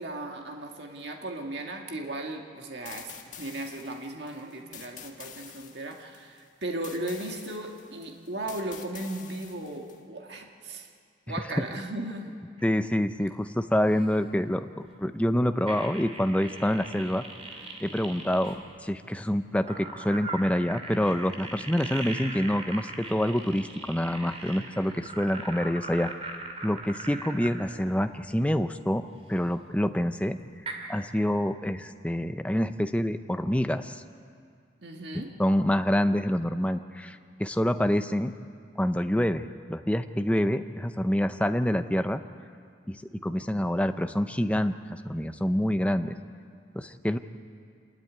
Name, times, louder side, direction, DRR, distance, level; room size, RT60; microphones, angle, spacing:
voice 1, 0.0-3.1 3.4-10.9 11.3-12.3 34.8-35.3, right 1 dB, 60° right, 2 dB, 1.8 m, -36 dB
sound 1, 2.8-10.0, left 8 dB, 40° left, 1.9 m, -47 dB
voice 2, 12.6-17.2 17.8-26.3 26.6-29.0 29.3-30.4 30.9-34.0 35.4-38.3 38.8-42.2 42.9-46.2 46.7-47.2, equal, 5° left, 9 dB, 0.6 m, -27 dB
sound 2, 12.6-12.8 13.2-13.3 13.9-14.2 15.7-18.6 19.7-27.7 29.8-29.9 30.7-30.8, right 3 dB, 35° right, 2.4 m, -40 dB
27.0 x 13.5 x 9.6 m, 2.2 s
head